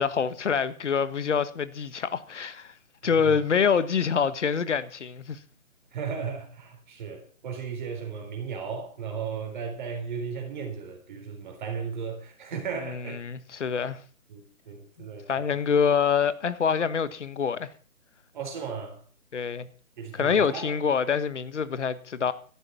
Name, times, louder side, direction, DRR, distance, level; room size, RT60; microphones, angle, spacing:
voice 1, 0.0-2.7 3.0-5.4 12.8-14.0 15.3-17.7 19.3-19.7 20.1-22.3, left 6 dB, 55° left, 1.4 m, -26 dB
voice 2, 5.9-13.2 14.3-15.6 18.3-19.0 20.0-20.7, right 6 dB, 35° right, 4.0 m, -35 dB
13.5 x 11.5 x 6.0 m
figure-of-eight pair, 155°, 42 cm